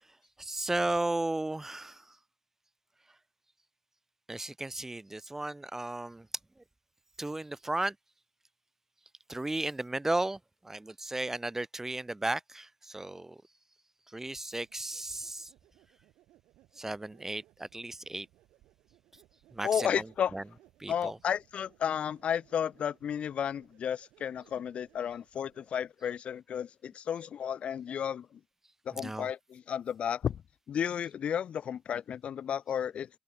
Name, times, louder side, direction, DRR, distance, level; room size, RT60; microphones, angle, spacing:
voice 1, 0.4-2.0 4.3-6.3 7.2-7.9 9.3-10.4 10.6-13.4 14.1-15.5 16.8-18.3 19.5-20.0 20.3-20.4 20.8-21.2 29.0-29.3, right 2 dB, 20° right, 0.5 m, -34 dB
sound 1, 14.2-25.9, right 15 dB, 85° right, 3.3 m, -64 dB
voice 2, 19.6-20.3 20.9-28.4 28.9-30.4 30.7-33.1, left 8 dB, 65° left, 0.5 m, -33 dB
hypercardioid pair, 45°, 2 cm